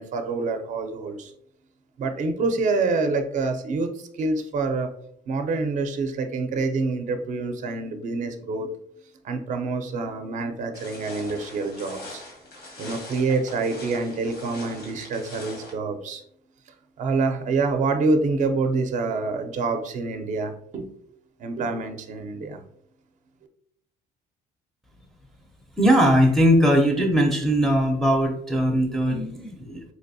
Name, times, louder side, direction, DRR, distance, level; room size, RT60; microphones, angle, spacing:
voice 1, 0.0-1.3 2.0-4.9 5.3-8.7 9.2-12.2 12.8-16.2 17.0-20.9 21.4-22.6, right 3 dB, 45° right, 6 dB, 0.5 m, -26 dB
sound 1, 10.7-15.7, left 1 dB, 90° left, 1.3 m, -41 dB
voice 2, 25.8-29.8, equal, ahead, 0 dB, 0.5 m, -20 dB
4.1 x 2.6 x 2.6 m, 0.67 s
cardioid pair, 110°, 17 cm